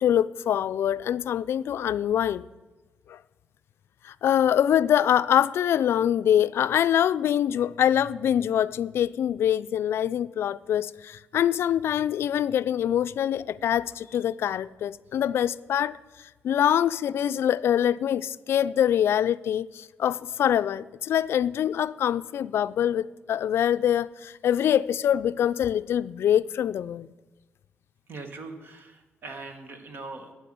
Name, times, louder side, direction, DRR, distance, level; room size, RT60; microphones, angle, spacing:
voice 1, 0.0-2.5 3.1-3.2 4.0-16.0 16.4-27.1, left 10 dB, 70° left, 0.3 m, -24 dB
voice 2, 28.1-30.3, right 3 dB, 55° right, 1.5 m, -41 dB
9.2 x 8.0 x 7.6 m
wide cardioid pair, 145°, 4 cm